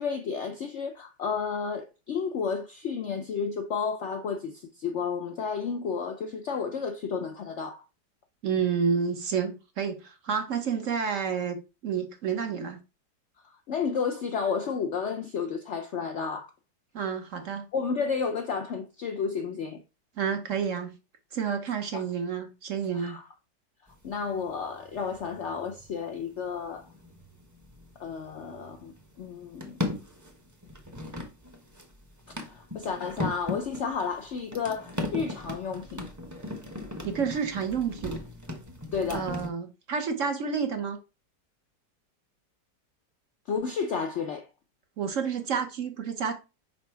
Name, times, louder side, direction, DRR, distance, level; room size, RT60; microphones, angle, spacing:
voice 1, 0.0-7.8 13.7-16.5 17.7-19.8 21.9-22.0 22.9-23.2 24.0-26.9 28.0-29.8 32.5-36.0 38.9-39.3 43.5-44.5, left 5 dB, 65° left, 0.7 m, -32 dB
voice 2, 8.4-12.8 16.9-17.7 20.2-20.9 21.3-23.2 37.0-38.2 39.1-41.0 45.0-46.3, right 6 dB, 55° right, 1.1 m, -29 dB
sound 1, 23.9-39.5, left 2 dB, 15° right, 0.8 m, -38 dB
5.3 x 4.1 x 4.5 m
omnidirectional pair, 1.9 m